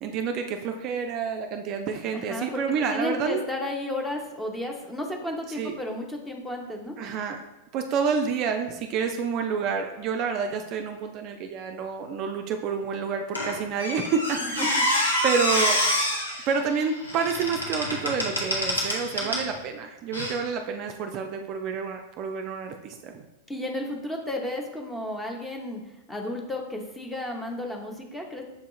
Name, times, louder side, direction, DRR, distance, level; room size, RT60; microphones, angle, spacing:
voice 1, 0.0-3.4 5.5-5.8 7.0-7.4 7.7-14.8 15.2-15.8 16.5-23.3, right 6 dB, 40° right, 5 dB, 0.3 m, -29 dB
voice 2, 2.1-2.6 2.9-7.0 14.4-14.7 19.2-19.5 23.5-25.8 26.1-28.4, left 1 dB, 10° left, 1 dB, 0.7 m, -33 dB
Squeak, 13.3-19.5 20.1-20.3, left 1 dB, 90° left, 0.9 m, -27 dB
6.9 x 2.8 x 2.3 m, 0.98 s
figure-of-eight pair, 95°, 0 cm